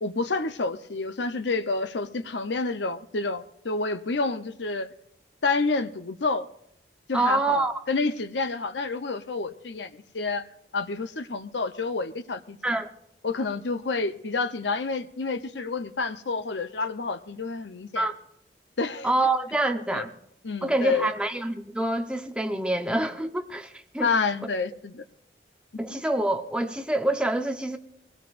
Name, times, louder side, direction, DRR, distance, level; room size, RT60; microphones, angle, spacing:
voice 1, 0.0-4.9 5.4-6.5 7.1-9.9 10.1-10.4 10.7-12.6 13.2-18.1 18.8-19.1 19.9-20.0 20.4-21.1 24.0-25.0, left 3 dB, 85° left, 0.8 m, -29 dB
voice 2, 7.1-7.8 12.6-12.9 17.9-18.2 19.0-20.1 20.6-24.1 25.8-27.8, right 2 dB, 5° right, 0.9 m, -26 dB
22.0 x 17.0 x 2.6 m
head